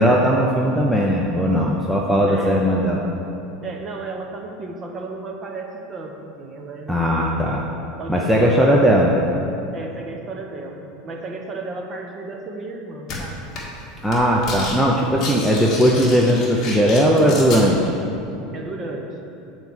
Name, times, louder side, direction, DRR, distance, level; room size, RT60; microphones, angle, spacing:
voice 1, 0.0-3.0 6.9-7.6 8.1-9.1 14.0-17.8, equal, ahead, -3 dB, 0.6 m, -18 dB
voice 2, 2.3-2.6 3.6-7.3 8.0-8.6 9.7-13.4 18.5-19.2, right 3 dB, 25° right, 2 dB, 0.9 m, -34 dB
sound 1, 13.1-13.2 13.5-13.8 14.1-14.8 15.0-17.6, left 3 dB, 35° left, 1.8 m, -30 dB
8.1 x 4.6 x 7.2 m, 2.8 s
supercardioid pair, 155°, 0 cm